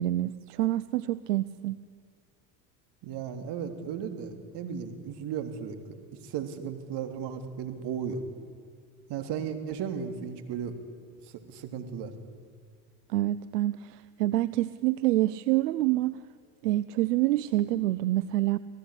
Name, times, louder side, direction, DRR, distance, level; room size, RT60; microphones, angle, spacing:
voice 1, 0.0-1.8 13.1-16.2 16.6-18.6, right 15 dB, 85° right, 16 dB, 0.7 m, -27 dB
voice 2, 3.0-5.8 6.2-8.2 9.1-10.8 11.3-12.1, right 7 dB, 60° right, 7 dB, 3.3 m, -35 dB
26.5 x 17.5 x 9.9 m, 2.1 s
hypercardioid pair, 80°, 47 cm